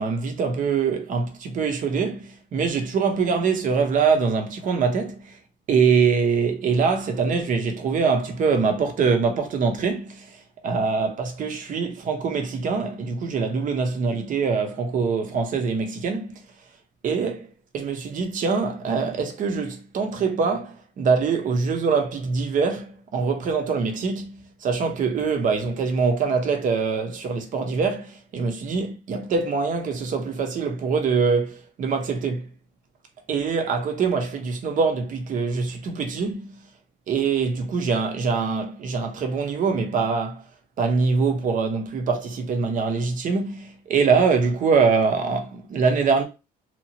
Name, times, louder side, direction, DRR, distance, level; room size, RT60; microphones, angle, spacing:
voice 1, 0.0-5.4 5.7-16.4 17.0-17.5 17.7-32.5 33.3-36.6 37.1-40.4 40.8-46.2, right 5 dB, 50° right, 0.7 m, -24 dB
2.9 x 2.3 x 2.8 m
cardioid pair, 110°, 17 cm